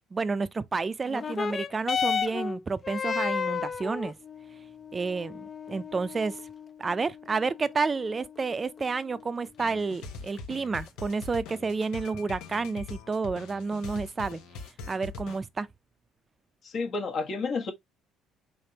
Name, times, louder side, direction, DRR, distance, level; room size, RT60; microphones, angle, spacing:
voice 1, 0.1-4.1 4.9-6.4 6.8-14.4 14.9-15.7, right 4 dB, 30° right, 0.4 m, -30 dB
sound 1, 1.1-10.0 10.9-11.0, left 6 dB, 35° left, 0.4 m, -34 dB
sound 2, 9.6-15.4, left 4 dB, 80° left, 0.9 m, -42 dB
voice 2, 16.6-17.7, left 4 dB, 55° left, 1.1 m, -30 dB
4.2 x 3.4 x 2.8 m
supercardioid pair, 80°, 0 cm